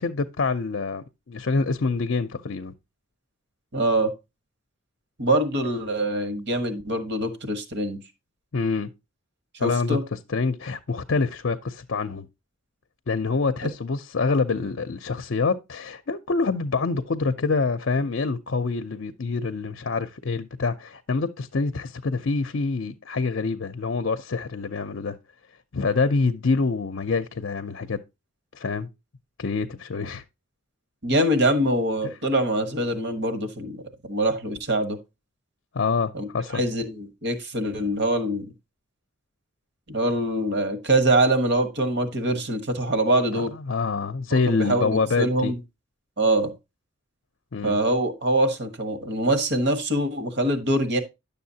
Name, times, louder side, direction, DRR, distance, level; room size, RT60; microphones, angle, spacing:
voice 1, 0.0-2.7 8.5-8.9 9.6-12.3 13.1-25.2 25.7-28.0 28.5-28.9 29.4-30.2 32.0-32.1 35.7-36.6 43.4-45.5 47.5-47.8, left 4 dB, 60° left, 0.6 m, -26 dB
voice 2, 3.7-4.1 5.2-8.0 9.5-10.0 31.0-35.0 36.1-38.5 39.9-43.5 44.3-44.9 45.2-45.6 46.2-46.5 47.6-51.0, right 1 dB, 55° right, 1.3 m, -24 dB
10.5 x 6.9 x 2.7 m
head